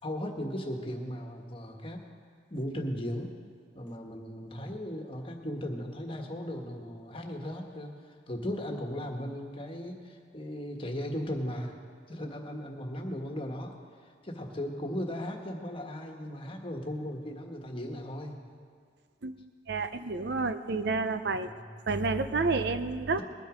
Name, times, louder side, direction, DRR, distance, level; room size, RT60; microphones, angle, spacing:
voice 1, 0.0-2.1 2.5-3.4 3.7-7.9 8.3-11.7 12.1-13.7 14.2-18.4 21.3-21.6, equal, 30° left, 2 dB, 1.5 m, -37 dB
voice 2, 19.7-21.5 21.9-23.2, right 3 dB, 60° right, 11 dB, 0.7 m, -29 dB
20.5 x 9.2 x 5.1 m, 2.2 s
head